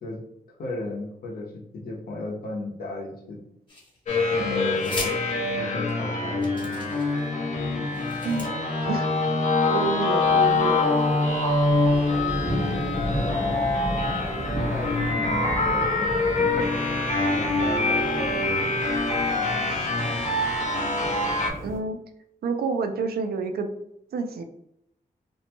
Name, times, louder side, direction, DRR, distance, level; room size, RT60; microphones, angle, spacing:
voice 1, 0.5-3.4 4.3-5.2 5.6-7.0 13.0-13.6 14.7-16.5 17.4-18.8 19.3-19.9, left 2 dB, 80° left, -2 dB, 0.8 m, -36 dB
sound 1, 3.7-4.2 4.8-5.1 5.9-6.0 6.4-7.2 7.8-8.5, left 1 dB, 30° left, 1.0 m, -37 dB
sound 2, 4.1-21.5, left 2 dB, 50° left, 0.6 m, -24 dB
voice 2, 9.7-10.8 21.6-22.0 22.4-23.7 24.1-24.4, right 4 dB, 80° right, 7 dB, 0.4 m, -28 dB
sound 3, 10.2-21.8, right 1 dB, 15° right, 0.7 m, -35 dB
2.6 x 2.2 x 2.8 m, 0.78 s
wide cardioid pair, 90°, 16 cm